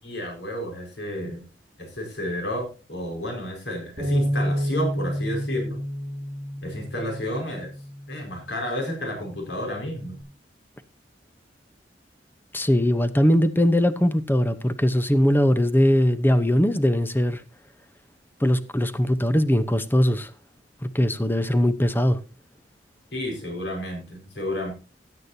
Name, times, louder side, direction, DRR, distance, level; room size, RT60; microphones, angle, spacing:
voice 1, 0.0-1.4 1.8-5.8 6.6-7.7 8.1-10.2 23.1-24.7, equal, 80° left, 5.0 m, -31 dB
Bass guitar, 4.0-8.4 9.1-10.2, equal, 30° right, 5.2 m, -30 dB
voice 2, 12.5-17.4 18.4-20.3 20.8-22.2, equal, 10° left, 0.9 m, -20 dB
16.5 x 9.7 x 2.8 m
head